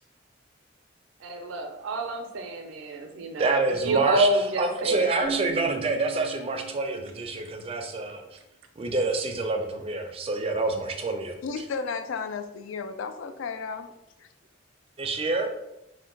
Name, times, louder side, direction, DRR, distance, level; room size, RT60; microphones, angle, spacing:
voice 1, 1.2-5.2, right 2 dB, 85° right, 5 dB, 0.5 m, -28 dB
voice 2, 3.4-4.3 4.6-8.2 8.8-11.4 15.0-15.5, right 3 dB, 30° right, 4 dB, 0.4 m, -27 dB
Keyboard (musical), 5.2-7.8, right 8 dB, 55° left, 1.3 m, -39 dB
voice 3, 11.4-13.9, left 5 dB, 75° left, 8 dB, 0.3 m, -33 dB
2.7 x 2.1 x 3.8 m, 0.88 s
head